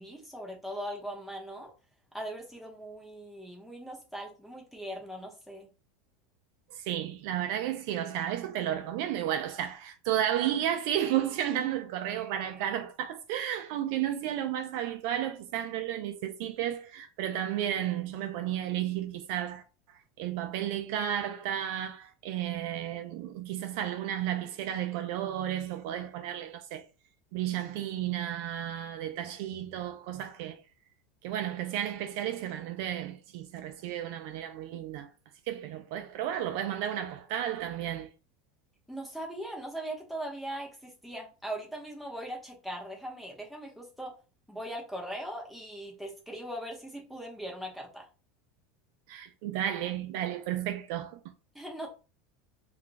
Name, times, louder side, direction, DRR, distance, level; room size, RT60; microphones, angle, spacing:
voice 1, 0.0-1.7 2.1-5.7 38.9-44.2 44.5-48.1 51.5-51.9, right 1 dB, ahead, 0.8 m, -40 dB
voice 2, 6.7-19.6 19.9-26.8 27.3-30.6 31.2-35.1 35.5-38.1 49.1-51.2, right 11 dB, 60° right, 0.4 m, -33 dB
2.4 x 2.2 x 3.8 m
supercardioid pair, 155°, 0 cm